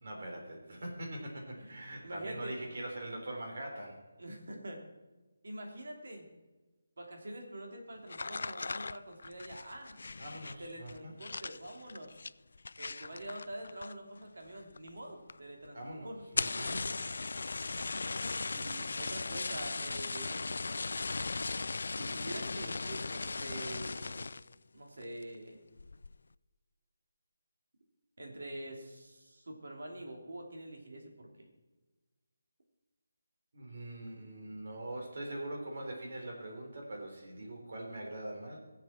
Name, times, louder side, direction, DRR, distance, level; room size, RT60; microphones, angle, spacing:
voice 1, 0.0-4.0 10.2-11.1 15.7-16.9 33.5-38.6, right 1 dB, 55° right, 1 dB, 3.8 m, -42 dB
voice 2, 1.5-2.5 4.2-4.8 5.4-6.3 7.0-10.0 10.6-12.1 12.8-15.8 16.0-16.8 18.5-20.5 21.9-24.3 24.7-25.6 28.2-31.5, right 1 dB, 70° right, 1 dB, 3.1 m, -45 dB
sound 1, 8.1-14.2 14.5-15.0 15.3-15.4 15.6-15.7 16.2-24.5 25.0-25.4 25.8-26.1, left 3 dB, 65° left, 0.3 m, -38 dB
19.0 x 7.7 x 4.4 m, 1.2 s
hypercardioid pair, 175°, 0 cm